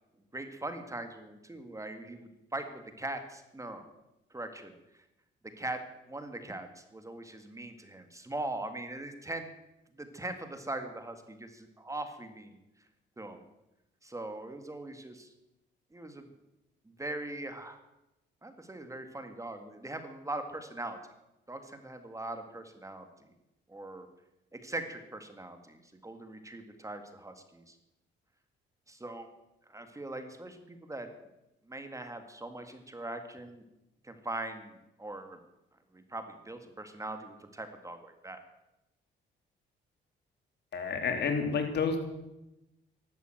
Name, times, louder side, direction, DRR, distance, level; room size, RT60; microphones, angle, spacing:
voice 1, 0.3-3.9 4.3-5.0 5.6-5.8 6.1-9.5 10.0-12.6 13.2-13.4 14.0-15.3 15.9-16.3 16.9-17.8 18.4-21.0 21.5-23.3 23.7-24.1 24.5-27.8 28.9-29.3 29.7-31.1 31.7-33.6 34.0-35.4 35.9-38.4, right 2 dB, 15° right, 7 dB, 2.0 m, -41 dB
voice 2, 40.7-42.0, left 5 dB, 60° left, 5 dB, 3.4 m, -29 dB
14.0 x 12.0 x 7.9 m, 0.92 s
cardioid pair, 90°, 20 cm